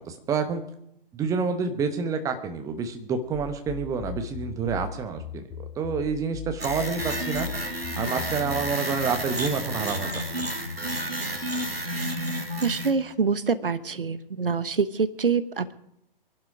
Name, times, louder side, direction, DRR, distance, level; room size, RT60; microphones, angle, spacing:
voice 1, 0.1-0.6 1.1-7.5 8.0-10.2, right 5 dB, 10° right, 7 dB, 1.2 m, -28 dB
sound 1, 3.3-8.8, left 8 dB, 10° left, 0.7 m, -39 dB
sound 2, 6.6-12.9, right 1 dB, 85° right, 2.3 m, -31 dB
voice 2, 12.6-15.7, right 5 dB, 65° right, 13 dB, 1.2 m, -25 dB
23.0 x 11.5 x 5.0 m, 0.77 s
figure-of-eight pair, 125°, 29 cm